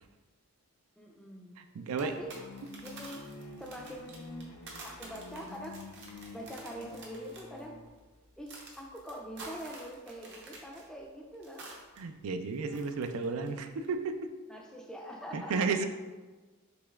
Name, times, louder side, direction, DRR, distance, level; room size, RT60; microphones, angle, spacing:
voice 1, 1.0-1.6 2.0-2.3 2.8-3.2 3.6-4.6 4.8-5.8 6.3-7.8 8.4-11.6 12.7-13.4 14.5-15.8, equal, 5° left, 0 dB, 0.4 m, -44 dB
voice 2, 1.6-2.1 12.0-14.3 15.3-15.8, right 4 dB, 70° right, 8 dB, 0.4 m, -33 dB
sound 1, 1.9-12.0 12.2-13.5 13.8-13.9, right 2 dB, 50° right, 0.8 m, -50 dB
sound 2, 2.1-7.9, left 3 dB, 90° left, 0.6 m, -49 dB
5.2 x 3.7 x 2.3 m, 1.3 s
head